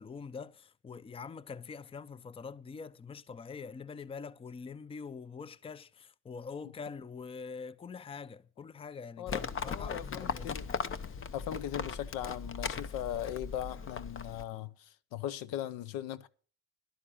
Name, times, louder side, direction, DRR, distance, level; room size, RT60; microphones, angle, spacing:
voice 1, 0.0-10.5, left 5 dB, 15° left, 0.5 m, -44 dB
voice 2, 9.2-10.7 11.3-16.3, left 11 dB, 85° left, 0.8 m, -39 dB
Livestock farm animals working animals, 9.3-14.4, left 6 dB, 40° left, 0.9 m, -38 dB
11.5 x 9.9 x 5.5 m
cardioid pair, 95°, 33 cm